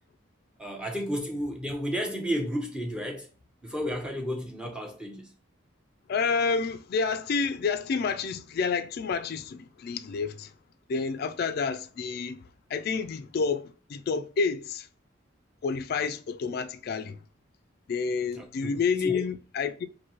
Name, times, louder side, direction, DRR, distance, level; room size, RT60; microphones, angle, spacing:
voice 1, 0.6-3.3 3.6-5.3 18.3-18.7 19.0-19.2, equal, 5° right, 0.7 m, -32 dB
voice 2, 6.1-10.5 10.9-12.4 12.7-14.9 15.6-17.2 17.9-19.9, left 5 dB, 50° left, 0.3 m, -29 dB
3.0 x 2.6 x 4.3 m
head